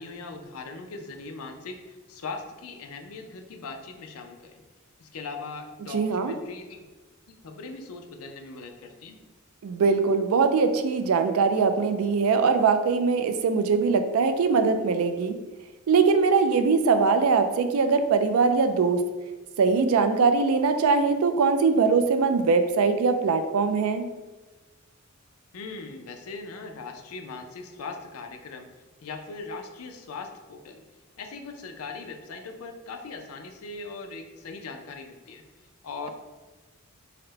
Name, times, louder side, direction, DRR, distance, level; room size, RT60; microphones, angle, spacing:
voice 1, 0.0-4.6 5.0-6.9 7.3-9.2 25.5-28.7 29.0-30.8 31.2-35.4 35.8-36.1, left 4 dB, 75° left, 4 dB, 0.5 m, -40 dB
voice 2, 5.9-6.3 9.6-15.4 15.9-19.0 19.6-24.0, right 4 dB, 75° right, 8 dB, 0.4 m, -22 dB
4.2 x 2.1 x 3.9 m, 1.2 s
head